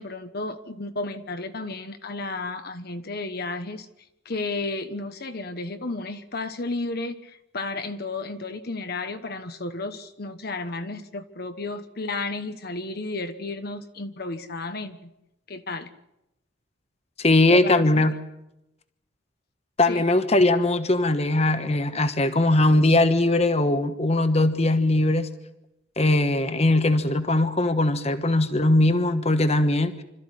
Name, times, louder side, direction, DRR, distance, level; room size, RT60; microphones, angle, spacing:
voice 1, 0.0-3.9 4.2-15.1 15.5-15.9 17.5-17.8 19.9-20.1, left 3 dB, 50° left, 9 dB, 1.2 m, -33 dB
voice 2, 17.2-18.2 19.8-25.3 26.0-30.0, left 2 dB, 30° left, 10 dB, 1.2 m, -20 dB
26.5 x 14.0 x 10.0 m, 0.90 s
head